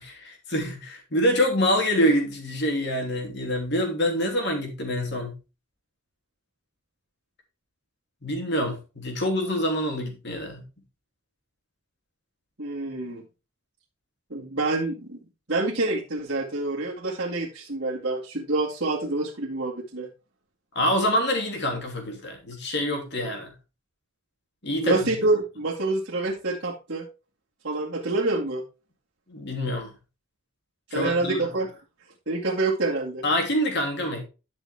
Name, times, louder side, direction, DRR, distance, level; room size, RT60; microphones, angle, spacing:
voice 1, 0.0-5.3 8.2-10.6 20.7-23.5 24.6-25.1 29.3-29.9 30.9-31.4 33.2-34.2, equal, 50° left, 3.1 m, -26 dB
voice 2, 12.6-13.2 14.3-15.2 15.5-20.1 24.8-27.0 27.6-28.6 30.9-31.7 32.3-33.2, right 2 dB, 55° right, 2.3 m, -27 dB
11.5 x 6.1 x 3.5 m
head